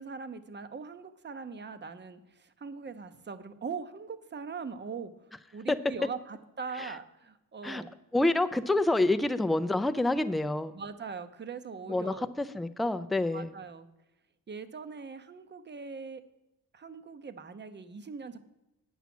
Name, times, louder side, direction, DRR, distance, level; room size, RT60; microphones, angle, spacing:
voice 1, 0.0-7.9 10.7-12.3 13.3-13.9 14.5-16.2 16.7-18.4, right 5 dB, 25° right, 11 dB, 0.7 m, -41 dB
voice 2, 8.1-10.7 11.9-13.5, left 2 dB, ahead, 11 dB, 0.3 m, -27 dB
9.2 x 7.1 x 6.0 m, 0.95 s
wide cardioid pair, 135°, 40 cm